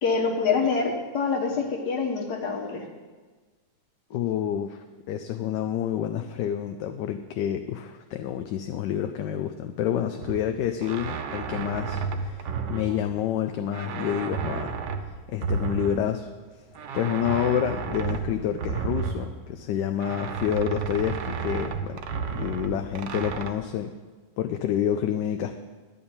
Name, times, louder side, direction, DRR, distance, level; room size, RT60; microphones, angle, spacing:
voice 1, 0.0-2.8, left 5 dB, 65° left, 2 dB, 1.9 m, -26 dB
voice 2, 4.1-14.8 15.3-16.3 16.9-22.0 22.3-23.9 24.4-25.6, left 9 dB, 80° left, 7 dB, 1.2 m, -28 dB
sound 1, 10.2-13.4 13.7-16.3 16.8-19.7 20.0-23.5, right 5 dB, 70° right, 1.4 m, -32 dB
11.0 x 5.5 x 8.7 m, 1.3 s
omnidirectional pair, 1.9 m